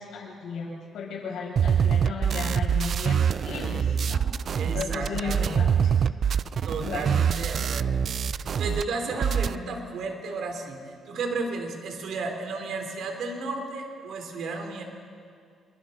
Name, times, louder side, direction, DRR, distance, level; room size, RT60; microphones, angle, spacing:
voice 1, 0.0-5.9 6.8-7.0, left 5 dB, 75° left, -3 dB, 6.9 m, -35 dB
sound 1, 1.6-8.8 9.1-9.6, right 7 dB, 55° right, 0.4 m, -25 dB
voice 2, 4.6-6.1 6.6-8.3 8.6-14.8, right 3 dB, 70° right, 3 dB, 3.6 m, -33 dB
27.5 x 23.5 x 4.4 m, 2.2 s
cardioid pair, 90°, 0 cm